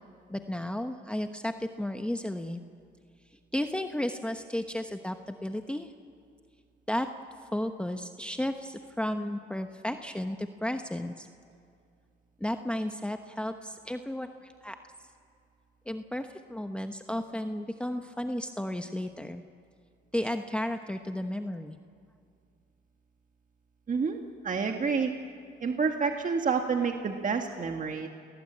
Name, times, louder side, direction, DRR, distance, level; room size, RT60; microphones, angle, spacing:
voice 1, 0.3-2.6 3.5-5.9 6.9-7.1 7.5-11.3 12.4-14.8 15.9-19.4 20.1-21.8, left 1 dB, 5° left, 6 dB, 1.0 m, -33 dB
voice 2, 23.9-25.1 25.6-28.1, right 5 dB, 40° right, 4 dB, 1.7 m, -29 dB
29.0 x 18.5 x 8.7 m, 2.3 s
cardioid pair, 90°, 20 cm